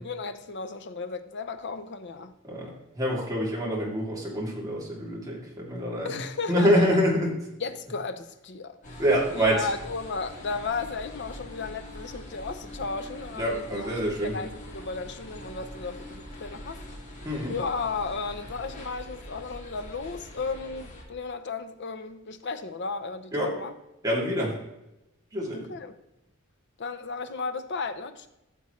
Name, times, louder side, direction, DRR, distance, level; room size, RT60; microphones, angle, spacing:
voice 1, 0.0-2.3 6.0-7.0 7.6-9.0 9.3-16.8 17.5-23.7 25.5-25.9 26.8-28.3, left 4 dB, 60° left, 0.8 m, -34 dB
voice 2, 2.4-6.2 6.5-7.3 9.0-9.7 13.4-14.4 17.2-17.6 23.3-23.5 24.0-24.6 25.3-25.7, equal, 20° right, 2.7 m, -26 dB
sound 1, 8.8-21.0, left 1 dB, 40° left, 2.1 m, -43 dB
14.5 x 7.0 x 3.2 m
head